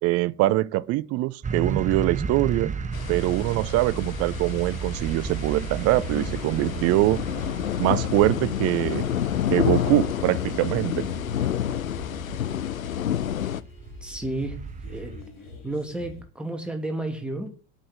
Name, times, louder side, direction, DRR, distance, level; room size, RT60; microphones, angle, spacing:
voice 1, 0.0-2.7 3.1-7.2 7.8-9.0 9.5-11.1, right 17 dB, 40° right, 0.6 m, -23 dB
sound 1, 1.4-15.2, right 5 dB, 20° right, 0.9 m, -34 dB
sound 2, 2.9-13.6, left 10 dB, 80° left, 0.6 m, -29 dB
sound 3, 5.9-16.2, left 3 dB, 55° left, 4.4 m, -45 dB
voice 2, 14.0-15.1 15.6-17.5, right 2 dB, ahead, 2.6 m, -32 dB
8.5 x 6.5 x 7.8 m
figure-of-eight pair, 70°, 40 cm